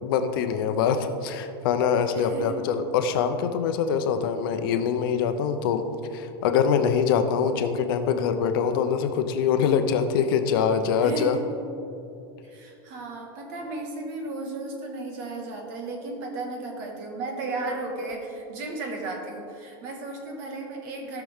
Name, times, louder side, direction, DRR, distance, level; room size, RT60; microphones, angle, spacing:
voice 1, 0.0-5.8 6.1-11.4, left 7 dB, 65° left, 8 dB, 0.8 m, -24 dB
voice 2, 2.2-2.5 11.0-11.4 12.4-21.2, right 2 dB, 55° right, 2 dB, 1.8 m, -34 dB
16.5 x 6.0 x 3.7 m, 2.7 s
supercardioid pair, 150°, 13 cm